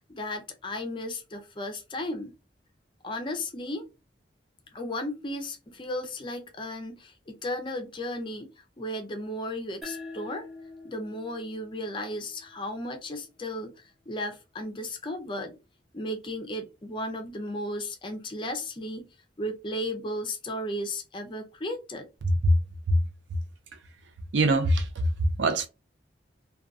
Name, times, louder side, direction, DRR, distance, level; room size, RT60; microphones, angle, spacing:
voice 1, 0.1-2.3 3.0-3.9 4.7-8.5 8.8-10.5 10.8-15.5 15.9-19.1 19.4-22.1, left 1 dB, 25° left, 0.4 m, -35 dB
sound 1, 9.8-13.0, left 3 dB, ahead, 0.7 m, -45 dB
voice 2, 22.2-22.6 22.9-23.0 23.3-23.4 23.7-23.8 24.3-25.7, right 1 dB, 75° right, 0.5 m, -23 dB
2.6 x 2.2 x 2.3 m
head